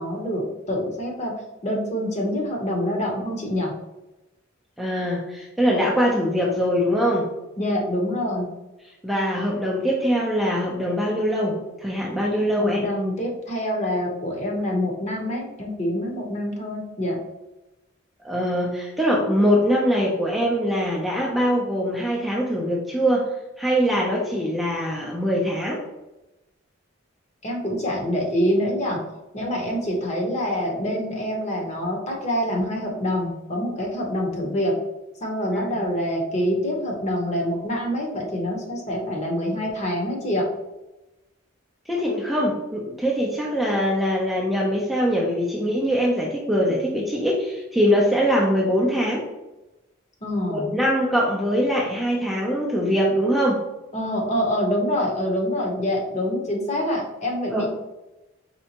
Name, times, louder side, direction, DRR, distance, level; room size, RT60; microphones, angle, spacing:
voice 1, 0.0-3.7 7.6-8.5 12.6-17.2 27.4-29.0 29.3-34.8 35.2-40.5 50.2-50.7 53.9-57.7, equal, 35° left, 0 dB, 0.9 m, -26 dB
voice 2, 4.8-7.3 9.0-12.8 18.2-23.3 23.6-25.8 35.5-35.8 41.9-49.3 50.5-53.6 57.5-57.7, equal, ahead, -4 dB, 0.5 m, -22 dB
4.4 x 3.4 x 2.9 m, 1.0 s
head